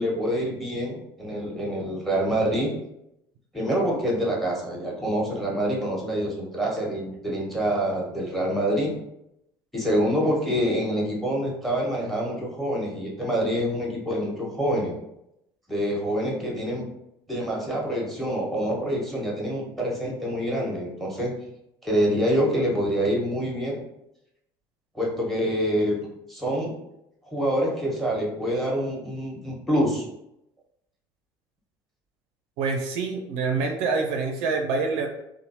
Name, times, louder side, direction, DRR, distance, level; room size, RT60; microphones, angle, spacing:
voice 1, 0.0-2.7 3.5-8.9 9.7-14.9 15.7-16.9 17.3-21.3 21.8-23.8 24.9-26.0 26.3-26.7 27.3-30.0, equal, ahead, -2 dB, 1.1 m, -26 dB
voice 2, 32.6-35.1, right 4 dB, 70° right, 3 dB, 0.4 m, -26 dB
3.1 x 2.0 x 2.8 m, 0.81 s
hypercardioid pair, 70°, 12 cm